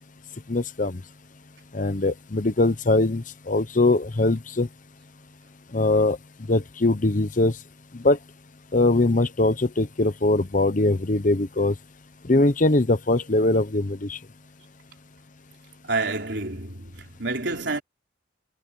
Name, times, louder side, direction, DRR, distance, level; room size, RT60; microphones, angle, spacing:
voice 1, 0.5-1.0 1.7-4.7 5.7-6.2 6.5-7.5 7.9-8.2 8.7-11.7 12.3-14.2, left 2 dB, 40° left, 0.9 m, -21 dB
voice 2, 15.8-17.8, right 3 dB, 60° right, 4.2 m, -28 dB
head